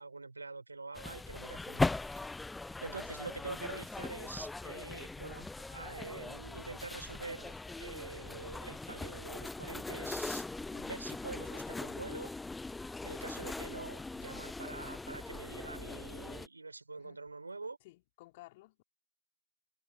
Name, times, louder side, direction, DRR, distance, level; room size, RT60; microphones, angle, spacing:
voice 1, 0.0-2.4 2.8-12.3 13.0-17.8, right 3 dB, 70° right, 4.6 m, -46 dB
sound 1, 0.9-16.5, left 3 dB, 5° left, 0.6 m, -40 dB
voice 2, 10.7-11.0 11.5-12.0 17.0-17.2 17.8-18.8, left 19 dB, 25° left, 4.0 m, -56 dB
figure-of-eight pair, 140°, 0 cm